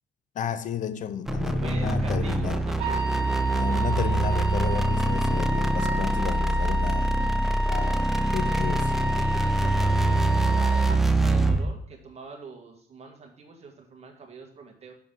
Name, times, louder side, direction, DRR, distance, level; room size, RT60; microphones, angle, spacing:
voice 1, 0.4-2.6 3.5-7.1 7.7-8.9, left 9 dB, 50° left, 0.5 m, -33 dB
sound 1, 1.3-11.7, right 1 dB, ahead, 0.4 m, -24 dB
voice 2, 1.6-3.1 9.2-14.9, right 4 dB, 40° right, 1.6 m, -44 dB
Wind instrument woodwind instrument, 2.8-11.0, right 2 dB, 70° right, 1.6 m, -31 dB
6.1 x 6.0 x 3.7 m
cardioid pair, 110°, 17 cm